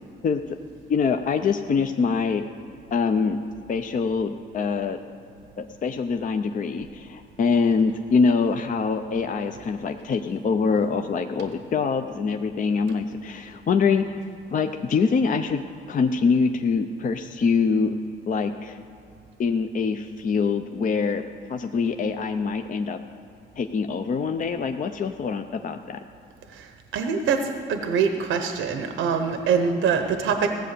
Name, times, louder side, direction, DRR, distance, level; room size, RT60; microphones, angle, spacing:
voice 1, 0.2-0.6 0.9-2.5 2.9-3.4 3.7-5.0 5.6-14.2 14.5-15.6 15.9-17.9 18.3-18.8 19.4-21.2 21.5-23.0 23.6-26.0, left 5 dB, 40° left, 7 dB, 0.6 m, -24 dB
voice 2, 26.5-30.5, right 6 dB, 80° right, 6 dB, 0.9 m, -24 dB
16.0 x 7.6 x 6.7 m, 2.6 s
cardioid pair, 90°, 20 cm